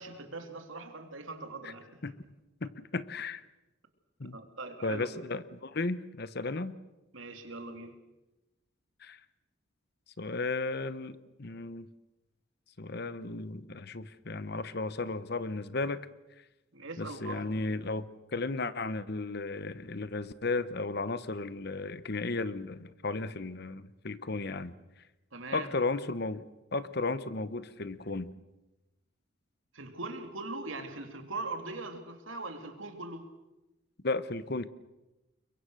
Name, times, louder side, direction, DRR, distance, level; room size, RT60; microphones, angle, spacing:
voice 1, 0.0-2.0 4.3-5.1 7.1-7.9 16.7-17.4 25.3-25.7 29.7-33.3, right 3 dB, 75° right, 6 dB, 3.0 m, -41 dB
voice 2, 2.6-3.4 4.2-4.4 4.8-6.7 9.0-9.2 10.2-11.9 12.8-16.1 17.0-24.7 25.5-26.4 26.7-28.3 34.0-34.7, left 3 dB, 50° left, 14 dB, 1.0 m, -34 dB
30.0 x 23.0 x 6.5 m, 1.0 s
head